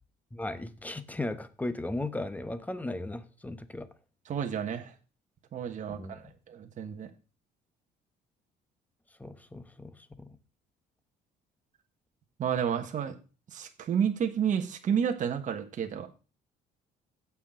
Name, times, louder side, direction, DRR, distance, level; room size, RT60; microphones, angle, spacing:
voice 1, 0.3-3.9 5.9-6.1 9.2-10.3, left 2 dB, 10° left, 1.1 m, -36 dB
voice 2, 4.3-4.9 5.5-7.1 12.4-13.1 13.5-16.1, right 8 dB, 45° right, 1.4 m, -31 dB
16.0 x 6.0 x 3.8 m
cardioid pair, 110°, 17 cm